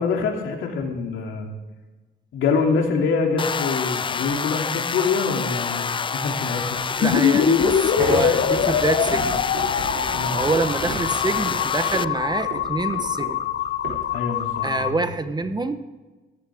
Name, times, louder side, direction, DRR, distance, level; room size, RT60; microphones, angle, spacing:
voice 1, 0.0-1.5 2.3-6.8 10.1-10.4 14.1-15.0, left 4 dB, 80° left, 2 dB, 2.8 m, -25 dB
sound 1, 3.4-12.0, left 6 dB, 25° left, 0.4 m, -28 dB
sound 2, 6.9-14.9, right 3 dB, 80° right, 4.2 m, -34 dB
sound 3, 7.0-14.9, left 9 dB, 60° left, 1.0 m, -23 dB
voice 2, 7.0-9.5 10.3-13.5 14.6-15.8, right 3 dB, 20° right, 10 dB, 1.1 m, -26 dB
15.5 x 15.0 x 3.7 m, 1.2 s
cardioid pair, 90°, 20 cm